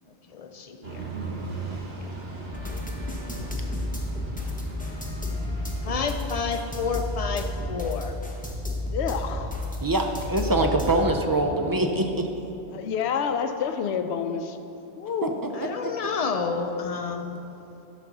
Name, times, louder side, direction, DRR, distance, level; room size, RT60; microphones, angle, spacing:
voice 1, 0.3-1.0 5.8-8.1 15.5-17.4, left 5 dB, 50° left, 5 dB, 0.5 m, -30 dB
sound 1, 0.8-8.8, right 3 dB, 65° right, 1.6 m, -40 dB
sound 2, 2.5-11.1, left 1 dB, 10° left, 0.8 m, -32 dB
voice 2, 8.9-9.5 12.7-14.6 15.0-15.4, left 7 dB, 80° left, 8 dB, 0.9 m, -28 dB
voice 3, 9.8-12.3 15.2-15.3 15.6-15.9, right 2 dB, 35° right, 3 dB, 0.3 m, -24 dB
12.5 x 4.2 x 6.0 m, 3.0 s
omnidirectional pair, 1.1 m